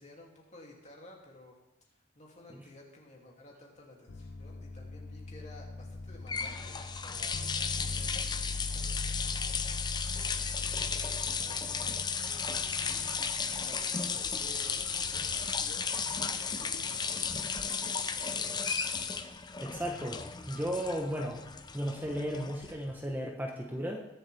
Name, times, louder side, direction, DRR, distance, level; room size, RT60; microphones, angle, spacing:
voice 1, 0.0-1.6 1.9-9.8 10.2-18.6, left 2 dB, 40° left, -2 dB, 2.7 m, -54 dB
sound 1, 4.1-15.9 16.7-17.1, left 3 dB, 85° left, 0.6 m, -41 dB
sound 2, 6.0-23.0, left 6 dB, 25° left, 0.6 m, -35 dB
voice 2, 19.6-21.4 21.7-24.1, equal, 10° right, 0 dB, 1.1 m, -35 dB
21.0 x 7.3 x 3.5 m, 0.97 s
head